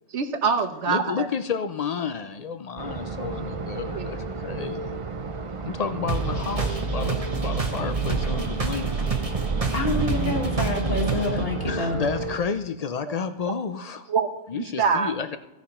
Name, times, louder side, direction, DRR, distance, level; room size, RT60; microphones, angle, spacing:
voice 1, 0.1-1.3 2.8-2.9 3.9-4.1 13.1-13.2 14.1-15.1, right 5 dB, 65° right, 6 dB, 1.2 m, -25 dB
voice 2, 0.9-4.9 5.6-9.0 11.3-11.4 11.7-14.1 14.5-15.4, left 6 dB, 65° left, 10 dB, 0.3 m, -31 dB
sound 1, 2.8-12.4, right 4 dB, 45° right, 0.4 m, -33 dB
sound 2, 6.1-11.4, right 4 dB, 30° right, 1.1 m, -27 dB
voice 3, 9.7-12.0, left 2 dB, 50° left, 1 dB, 2.0 m, -27 dB
16.0 x 5.8 x 4.3 m, 1.0 s
omnidirectional pair, 1.3 m